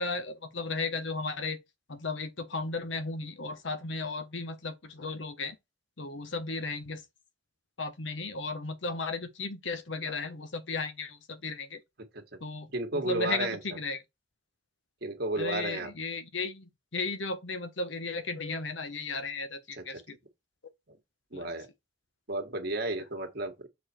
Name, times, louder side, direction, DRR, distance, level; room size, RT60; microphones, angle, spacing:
voice 1, 0.0-1.6 1.9-5.6 6.0-7.0 7.8-11.8 12.4-14.0 15.4-20.2 21.3-21.5, left 3 dB, 75° left, 1.2 m, -35 dB
voice 2, 12.7-13.6 15.0-15.9 19.8-19.9 20.9-21.0 21.3-21.7 22.3-23.7, right 2 dB, 55° right, 1.6 m, -32 dB
6.9 x 4.1 x 4.4 m
head